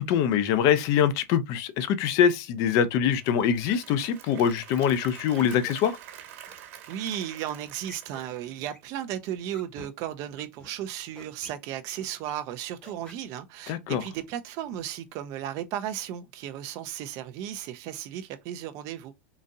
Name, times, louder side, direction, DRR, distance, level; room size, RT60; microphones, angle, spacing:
voice 1, 0.0-6.0 13.7-14.0, left 8 dB, 50° left, 0.6 m, -24 dB
Applause / Crowd, 3.0-9.0, right 10 dB, 65° right, 1.3 m, -47 dB
sound 1, 3.7-4.0 4.5-4.6 5.3-5.7 6.2-6.5 7.0-7.4 7.8-8.2 8.7-9.0 9.5-9.9 10.4-10.7 11.2-11.5 12.0-12.3 12.8-13.2 13.6-14.0, left 2 dB, 15° left, 1.0 m, -49 dB
voice 2, 6.9-19.1, right 11 dB, 45° right, 0.5 m, -35 dB
3.8 x 2.6 x 2.6 m
supercardioid pair, 125°, 8 cm